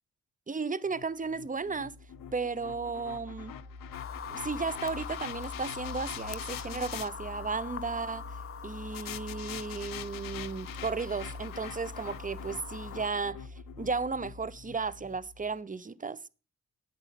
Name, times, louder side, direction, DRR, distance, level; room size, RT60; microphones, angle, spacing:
voice 1, 0.5-1.9 2.3-3.5 4.3-8.2 8.6-13.5 13.8-16.3, right 4 dB, 20° right, 0.8 m, -34 dB
sound 1, 0.9-7.1 8.9-15.2, left 11 dB, 65° left, 0.9 m, -45 dB
sound 2, 1.1-15.6, left 2 dB, 75° right, 2.2 m, -47 dB
sound 3, 3.9-13.1, left 8 dB, 40° left, 0.8 m, -43 dB
9.4 x 8.0 x 5.9 m
supercardioid pair, 50°, 36 cm